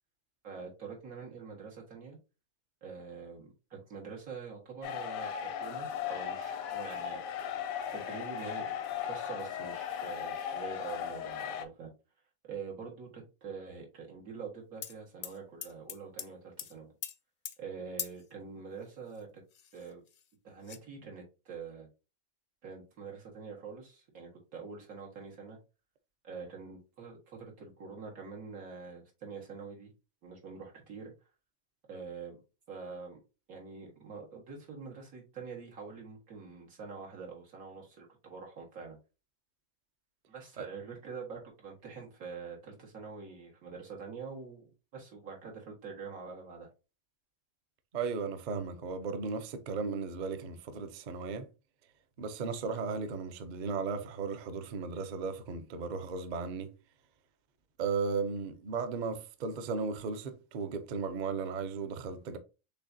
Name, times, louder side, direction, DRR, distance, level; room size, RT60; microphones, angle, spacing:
voice 1, 0.4-2.2 2.8-7.2 7.9-11.9 12.4-16.9 17.6-19.4 19.7-20.0 20.4-21.9 22.6-25.6 26.2-29.9 30.2-31.1 31.9-32.4 32.7-33.2 33.5-39.0 40.3-46.7, right 5 dB, 90° right, 2.0 m, -45 dB
sound 1, 4.8-11.6, left 8 dB, 85° left, 1.0 m, -37 dB
sound 2, 14.8-14.9 15.2-16.3 16.6-16.7 17.0-17.2 17.4-17.6 18.0-18.2 19.1-19.2 19.5-20.2 20.6-20.8, left 8 dB, 65° left, 0.5 m, -41 dB
voice 2, 47.9-51.5 52.2-56.7 57.8-62.4, right 5 dB, 50° right, 0.5 m, -35 dB
6.6 x 2.8 x 2.6 m
omnidirectional pair, 1.4 m